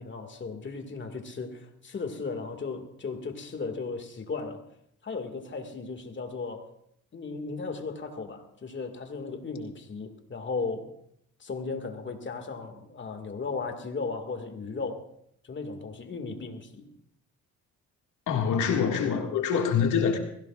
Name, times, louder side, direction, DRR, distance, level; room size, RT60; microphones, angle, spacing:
voice 1, 0.0-4.6 5.0-6.7 7.1-10.9 11.4-15.1 15.4-16.9, left 4 dB, 40° left, 2.1 m, -36 dB
voice 2, 18.3-20.2, left 7 dB, 80° left, 2.2 m, -25 dB
22.0 x 16.0 x 2.5 m
cardioid pair, 90°, 30 cm